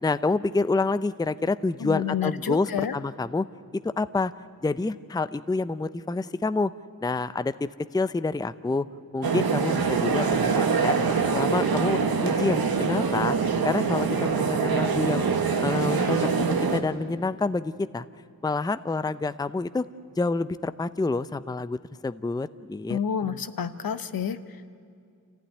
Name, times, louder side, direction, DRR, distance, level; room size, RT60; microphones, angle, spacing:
voice 1, 0.0-3.5 3.7-4.3 4.6-6.7 7.0-8.9 9.1-11.0 11.3-13.4 13.6-15.3 15.6-16.5 16.7-18.1 18.4-19.9 20.2-21.8 22.0-23.4, left 3 dB, 10° left, 14 dB, 0.5 m, -28 dB
voice 2, 1.8-2.9 22.9-24.4, left 7 dB, 75° left, 11 dB, 1.0 m, -29 dB
sound 1, 9.2-16.8, right 5 dB, 85° right, 1.6 m, -24 dB
26.5 x 15.0 x 9.9 m, 2.3 s
wide cardioid pair, 80°, 35 cm